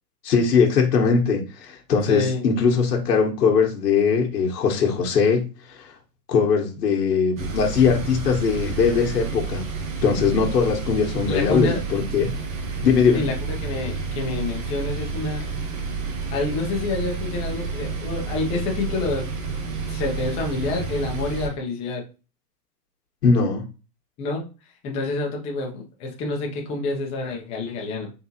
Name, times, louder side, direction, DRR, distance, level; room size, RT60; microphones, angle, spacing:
voice 1, 0.2-5.9 6.3-9.7 10.0-12.3 12.8-13.2 23.2-23.6, left 5 dB, 90° left, 0 dB, 1.3 m, -20 dB
voice 2, 2.1-2.4 11.3-11.8 13.1-15.5 16.3-19.2 19.9-22.0 24.2-24.4 24.8-28.1, left 3 dB, 15° left, 0 dB, 0.6 m, -28 dB
sound 1, 7.4-21.5, right 4 dB, 55° right, 1.3 m, -30 dB
4.0 x 3.5 x 2.8 m, 0.32 s
hypercardioid pair, 145°, 47 cm